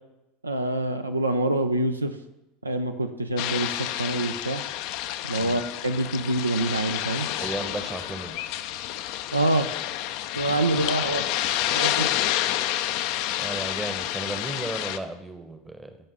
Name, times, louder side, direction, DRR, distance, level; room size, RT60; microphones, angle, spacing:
voice 1, 0.4-2.2 2.6-4.6 5.2-7.3 9.3-9.7 10.3-11.3 11.7-12.1, right 2 dB, 85° right, 8 dB, 0.5 m, -26 dB
sound 1, 3.4-15.0, left 13 dB, 55° left, 0.4 m, -29 dB
voice 2, 7.4-8.4 10.4-10.5 13.4-16.0, right 2 dB, 10° right, 8 dB, 0.9 m, -34 dB
13.0 x 5.4 x 3.5 m, 0.94 s
figure-of-eight pair, 75°, 0 cm